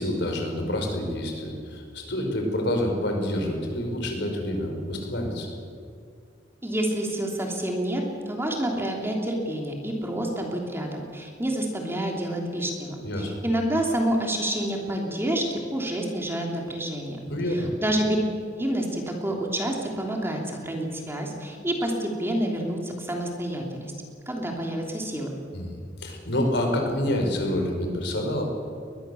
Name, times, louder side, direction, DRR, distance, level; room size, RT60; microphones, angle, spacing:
voice 1, 0.0-5.5 13.0-13.3 17.3-17.7 25.5-28.4, left 1 dB, 65° left, 3 dB, 4.8 m, -27 dB
voice 2, 6.6-17.2 17.5-18.2 18.6-23.9 24.3-25.3, right 1 dB, 15° right, 0 dB, 3.1 m, -28 dB
22.0 x 20.5 x 7.1 m, 2.3 s
head